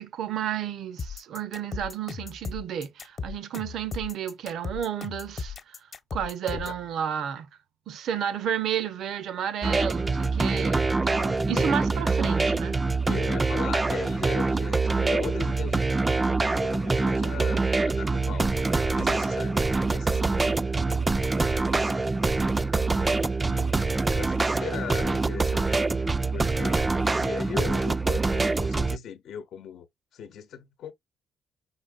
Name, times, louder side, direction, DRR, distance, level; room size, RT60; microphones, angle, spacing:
voice 1, 0.0-5.8 6.1-7.5 7.9-12.8, right 9 dB, 75° right, 0.7 m, -32 dB
sound 1, 1.0-6.8, left 5 dB, 50° left, 1.0 m, -36 dB
sound 2, 9.6-29.0, right 3 dB, 20° right, 0.4 m, -25 dB
voice 2, 11.5-11.9 13.1-18.6 18.9-20.7 21.3-22.1 23.4-25.8 26.3-29.9 30.1-30.9, left 8 dB, 70° left, 0.8 m, -39 dB
5.6 x 4.0 x 2.4 m
cardioid pair, 90°, 0 cm